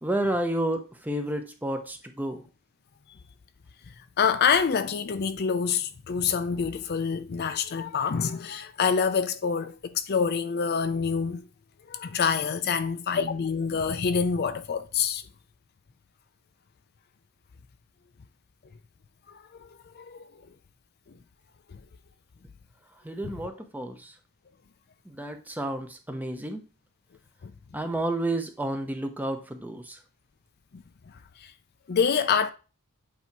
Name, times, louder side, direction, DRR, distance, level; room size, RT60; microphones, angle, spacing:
voice 1, 0.0-2.4 23.0-24.1 25.1-26.6 27.7-30.0, right 1 dB, 10° right, 0.6 m, -31 dB
voice 2, 4.2-11.4 11.9-15.2 19.3-20.4 21.1-21.2 21.7-21.8 23.2-23.3 27.4-27.5 30.7-31.5 31.9-32.5, left 6 dB, 45° left, 0.4 m, -27 dB
8.2 x 2.8 x 4.6 m
head